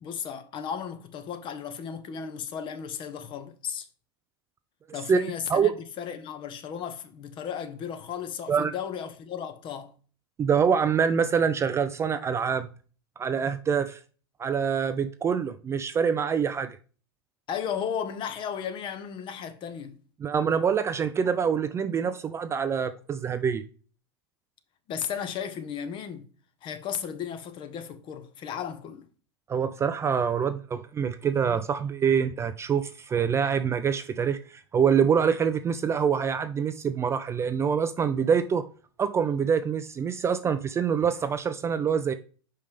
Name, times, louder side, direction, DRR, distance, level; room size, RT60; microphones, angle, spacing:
voice 1, 0.0-3.9 4.9-9.9 17.5-20.0 24.9-26.3 26.6-29.0, left 8 dB, 35° left, 1.0 m, -35 dB
voice 2, 10.4-12.7 13.2-14.0 14.4-16.8 20.2-23.6 29.5-38.6 39.0-42.1, right 7 dB, 20° right, 0.4 m, -25 dB
5.4 x 5.1 x 3.4 m
hypercardioid pair, 105°, 14 cm